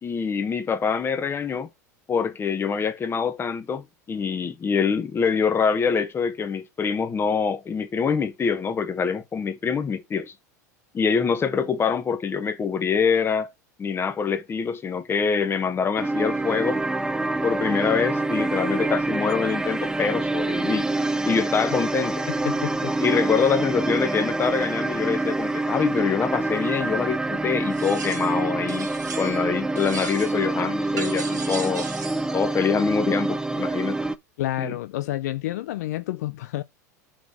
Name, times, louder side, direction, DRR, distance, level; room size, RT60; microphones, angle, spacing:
voice 1, 0.0-1.7 2.1-10.3 10.9-13.5 13.8-16.8 17.4-20.9 21.2-22.2 23.0-28.9 29.2-31.9 32.3-34.0 34.6-34.8, left 6 dB, 25° left, 1.3 m, -25 dB
sound 1, 16.0-34.1, right 2 dB, 10° right, 0.7 m, -26 dB
voice 2, 22.3-22.9 23.4-23.5 34.4-36.6, left 15 dB, 70° left, 0.5 m, -29 dB
sound 2, 27.7-28.4 28.7-29.5 29.7-30.5 31.0-32.3, right 5 dB, 85° right, 2.0 m, -37 dB
6.2 x 4.1 x 6.3 m
hypercardioid pair, 90°, 9 cm